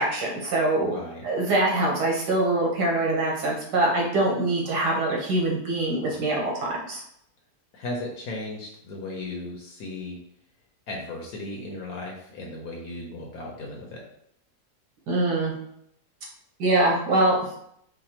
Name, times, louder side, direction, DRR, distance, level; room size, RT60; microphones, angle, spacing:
voice 1, 0.0-0.9 1.2-7.0 15.1-15.5 16.6-17.4, right 2 dB, 80° right, -3 dB, 1.7 m, -24 dB
voice 2, 0.8-1.3 6.2-6.4 7.7-10.2 10.9-14.0, left 2 dB, 70° left, -1 dB, 1.1 m, -36 dB
5.0 x 2.1 x 2.9 m, 0.72 s
omnidirectional pair, 1.8 m